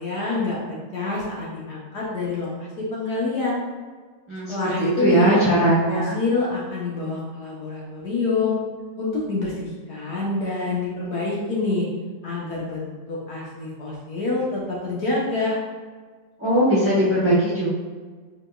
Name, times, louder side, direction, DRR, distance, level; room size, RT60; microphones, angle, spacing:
voice 1, 0.0-3.6 4.5-5.4 5.9-8.5 9.0-11.9 12.2-15.6, left 3 dB, 60° left, -5 dB, 1.4 m, -27 dB
voice 2, 4.3-6.2 16.4-17.7, right 1 dB, 10° right, -10 dB, 0.9 m, -20 dB
4.9 x 3.5 x 2.3 m, 1.5 s
omnidirectional pair, 2.0 m